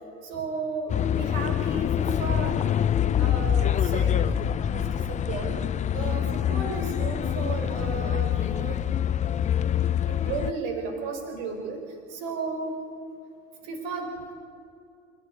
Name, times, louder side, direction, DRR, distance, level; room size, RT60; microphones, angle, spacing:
voice 1, 0.2-2.5 3.2-5.6 5.9-8.8 10.1-11.8 12.1-12.8 13.6-14.3, right 4 dB, 60° right, 5 dB, 4.5 m, -34 dB
sound 1, 0.9-10.5, left 9 dB, 20° left, 0.6 m, -25 dB
27.0 x 11.0 x 9.6 m, 2.4 s
figure-of-eight pair, 75°, 36 cm